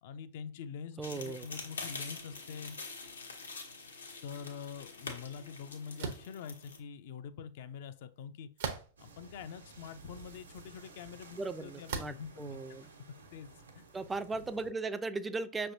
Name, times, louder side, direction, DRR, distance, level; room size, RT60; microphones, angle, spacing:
voice 1, 0.0-2.8 4.2-8.5 9.0-12.6 13.3-13.5 13.7-13.8, left 7 dB, 60° left, 11 dB, 0.5 m, -45 dB
sound 1, 1.0-6.8, left 3 dB, 85° left, 1.0 m, -45 dB
voice 2, 1.0-1.5 11.4-12.9 13.9-15.7, right 3 dB, 15° right, 12 dB, 0.4 m, -37 dB
sound 2, 6.0-6.3 8.6-9.1 9.8-9.9 11.9-12.3, right 6 dB, 65° right, 0.8 m, -38 dB
sound 3, 9.0-14.7, right 3 dB, 85° right, 1.0 m, -54 dB
5.6 x 3.3 x 2.6 m, 0.39 s
figure-of-eight pair, 100°, 0 cm